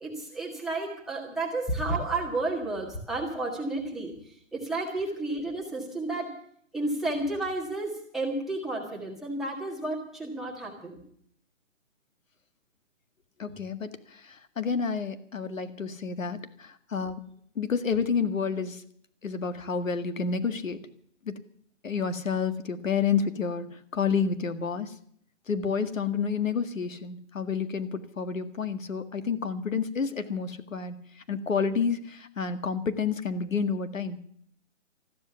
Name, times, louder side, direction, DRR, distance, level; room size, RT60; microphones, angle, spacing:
voice 1, 0.0-6.3 6.7-11.0, right 2 dB, ahead, -3 dB, 1.7 m, -32 dB
voice 2, 13.4-17.3 17.6-18.8 19.2-20.8 21.3-21.4 21.8-23.7 23.9-24.9 25.5-31.0 31.3-34.2, left 6 dB, 90° left, 10 dB, 2.0 m, -29 dB
14.5 x 13.0 x 6.9 m, 0.62 s
hypercardioid pair, 165°, 38 cm